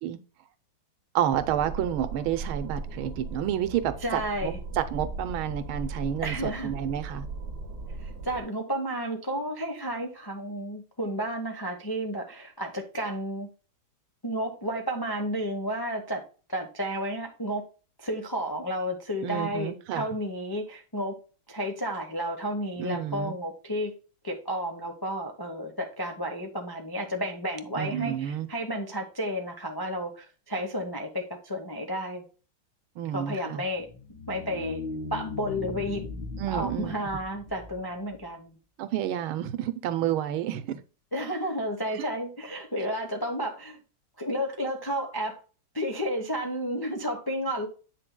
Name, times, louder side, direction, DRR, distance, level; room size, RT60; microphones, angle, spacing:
voice 1, 1.1-7.3 19.2-20.1 22.8-23.3 27.7-28.5 33.0-33.6 36.4-36.9 38.8-40.8 42.0-42.1, right 10 dB, 90° right, 1.6 m, -30 dB
sound 1, 1.3-8.4, right 3 dB, 55° right, 1.9 m, -37 dB
voice 2, 4.0-4.6 6.2-6.7 8.0-13.5 14.2-16.2 16.5-17.6 18.0-21.2 21.5-23.9 24.2-32.2 33.1-33.9 34.3-34.8 35.1-36.0 36.5-38.6 41.1-43.8 44.2-45.4 45.7-47.7, equal, 35° left, 0.3 m, -32 dB
sound 2, 33.7-38.2, left 3 dB, 70° left, 3.3 m, -38 dB
8.4 x 6.2 x 2.2 m
omnidirectional pair, 2.2 m